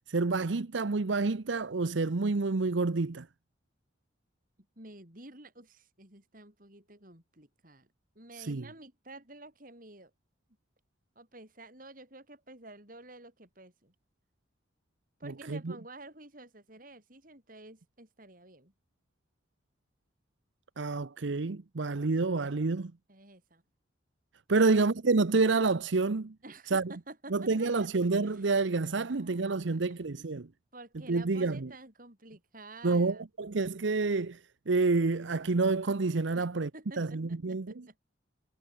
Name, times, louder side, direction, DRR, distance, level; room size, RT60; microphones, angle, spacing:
voice 1, 0.1-3.3 8.4-8.7 15.5-15.7 20.8-22.9 24.5-26.3 26.7-26.9 27.3-30.5 31.1-31.7 32.8-34.4 34.7-36.7 37.0-37.9, right 3 dB, 80° right, 0.8 m, -28 dB
voice 2, 4.8-7.9 8.2-10.1 11.2-13.9 15.2-18.7 23.1-23.6 24.5-24.8 26.4-27.9 28.2-28.4 29.0-30.0 30.7-33.2 36.3-36.5 36.7-38.0, right 2 dB, 45° right, 7.4 m, -50 dB
head